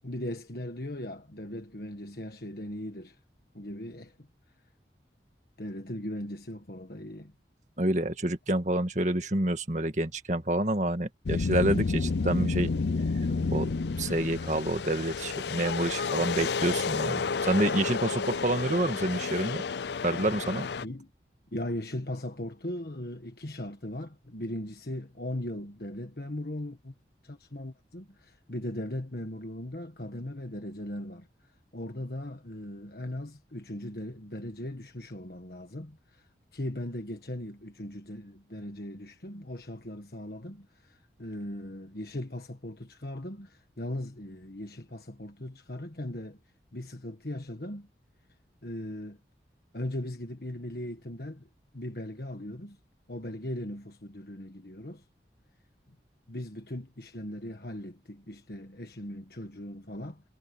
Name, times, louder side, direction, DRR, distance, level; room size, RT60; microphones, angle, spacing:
voice 1, 0.0-3.2 3.5-4.3 5.6-7.3 20.8-21.1 21.5-26.9 27.2-46.4 46.7-47.9 48.6-49.2 49.7-51.5 51.7-52.8 53.1-55.0 56.3-60.2, left 1 dB, 60° left, 1.5 m, -38 dB
voice 2, 7.8-12.7 13.5-13.7 14.0-19.6 20.0-20.7, right 1 dB, 40° right, 2.0 m, -28 dB
sound 1, 11.3-20.9, left 4 dB, 75° left, 0.5 m, -30 dB
head